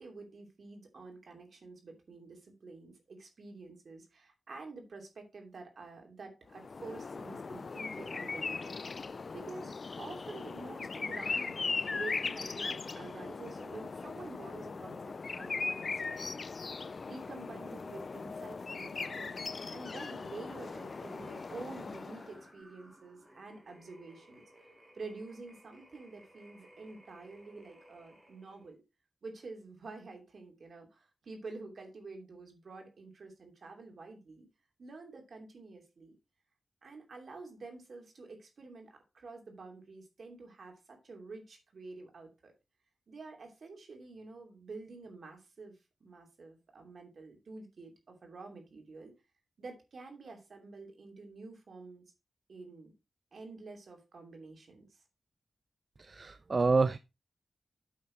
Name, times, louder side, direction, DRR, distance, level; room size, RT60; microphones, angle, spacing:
voice 1, 0.0-8.8 9.3-15.9 16.1-16.4 17.0-24.4 24.9-28.8 29.2-34.5 34.8-36.1 36.8-42.5 43.1-45.7 46.0-49.1 49.6-52.0 52.5-52.9 53.3-54.8, right 3 dB, 65° right, 2.8 m, -48 dB
sound 1, 6.5-22.4, left 4 dB, 50° left, 0.3 m, -39 dB
sound 2, 20.4-28.7, right 1 dB, 20° right, 3.0 m, -60 dB
voice 2, 56.0-57.0, right 4 dB, 40° right, 0.4 m, -28 dB
8.6 x 5.8 x 4.4 m
wide cardioid pair, 95°, 0 cm